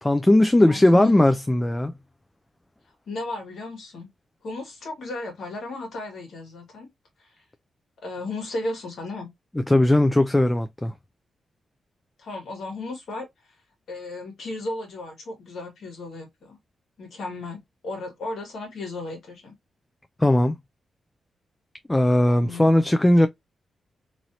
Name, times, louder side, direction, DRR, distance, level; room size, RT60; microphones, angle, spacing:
voice 1, 0.0-1.9 9.7-10.9 20.2-20.6 21.9-23.3, left 1 dB, 15° left, 0.3 m, -18 dB
voice 2, 0.7-1.2 3.1-4.1 4.4-6.9 7.2-7.3 8.0-9.3 12.2-13.3 13.9-16.6 17.0-19.5 22.3-22.7, left 2 dB, 75° left, 1.6 m, -34 dB
3.0 x 2.7 x 2.5 m
cardioid pair, 80°, 0 cm